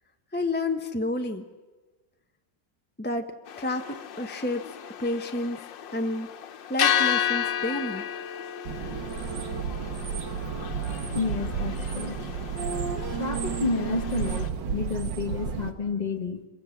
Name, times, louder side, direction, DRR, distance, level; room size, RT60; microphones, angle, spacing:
voice 1, 0.3-1.5 3.0-5.6 5.9-6.3 6.7-8.1, left 1 dB, 10° left, 5 dB, 0.6 m, -30 dB
sound 1, 3.5-14.5, left 9 dB, 90° left, 1.7 m, -32 dB
sound 2, 8.7-15.7, right 6 dB, 85° right, 1.9 m, -32 dB
voice 2, 11.1-12.2 13.1-16.4, left 5 dB, 25° left, 7 dB, 1.4 m, -30 dB
26.5 x 23.0 x 7.2 m, 1.2 s
omnidirectional pair, 1.9 m